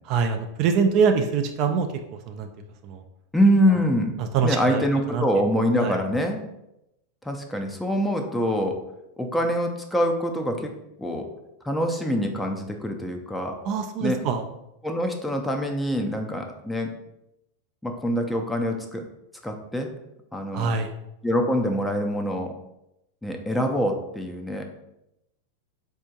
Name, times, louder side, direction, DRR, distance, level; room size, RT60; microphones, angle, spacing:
voice 1, 0.1-2.5 2.8-3.0 4.2-4.8 5.1-5.2 5.8-6.0 13.6-14.4 20.5-20.9, right 5 dB, 50° right, 6 dB, 0.4 m, -24 dB
voice 2, 3.3-4.1 4.4-6.4 7.2-8.7 9.2-10.7 11.0-11.3 11.6-13.5 14.0-14.2 14.8-16.9 17.8-19.0 19.4-19.9 20.3-20.7 21.2-22.5 23.2-24.7, equal, 5° left, 3 dB, 0.5 m, -24 dB
4.2 x 2.7 x 2.3 m, 0.87 s
hypercardioid pair, 95°, 0 cm